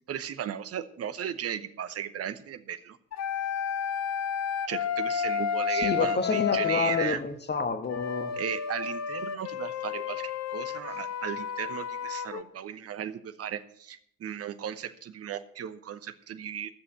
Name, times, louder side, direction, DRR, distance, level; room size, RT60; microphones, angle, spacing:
voice 1, 0.1-3.0 4.7-7.2 8.4-16.8, right 9 dB, 40° right, 12 dB, 0.9 m, -36 dB
sound 1, 3.1-7.1 7.9-12.4, left 7 dB, 45° left, 0.9 m, -31 dB
voice 2, 5.7-8.4, left 4 dB, 25° left, 8 dB, 1.3 m, -29 dB
13.5 x 6.9 x 7.7 m, 0.68 s
figure-of-eight pair, 45°, 38 cm